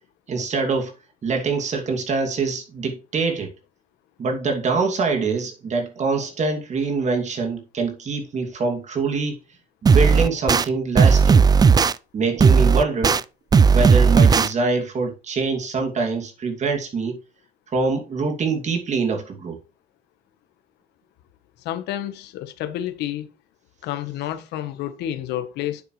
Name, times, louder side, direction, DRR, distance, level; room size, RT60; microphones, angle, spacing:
voice 1, 0.3-0.9 1.2-3.5 4.2-9.4 9.8-11.5 12.1-13.2 13.7-17.2 17.7-19.6, right 4 dB, 45° right, 2.7 m, -24 dB
sound 1, 9.9-10.6 11.0-11.9 12.4-13.2 13.5-14.5, right 5 dB, 25° right, 0.4 m, -15 dB
voice 2, 21.6-23.3 23.8-25.8, left 12 dB, 85° left, 1.3 m, -29 dB
9.2 x 8.0 x 3.3 m
cardioid pair, 110°, 17 cm